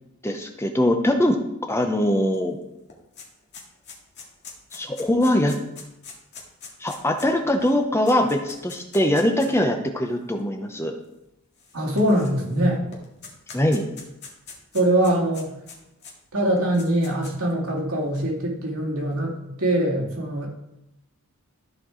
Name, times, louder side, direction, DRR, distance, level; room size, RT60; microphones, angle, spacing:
voice 1, 0.2-1.4 1.7-2.6 4.7-5.6 6.8-10.9 13.5-13.9, left 1 dB, 10° left, 4 dB, 0.6 m, -22 dB
sound 1, 2.3-2.4 2.7-9.6 10.4-10.5 11.6-12.6 12.9-16.1 16.6-17.5, left 5 dB, 50° left, 1.7 m, -43 dB
voice 2, 11.7-12.8 14.7-15.5 16.3-20.5, right 1 dB, 75° right, -2 dB, 2.3 m, -23 dB
13.5 x 4.5 x 3.8 m, 0.87 s
head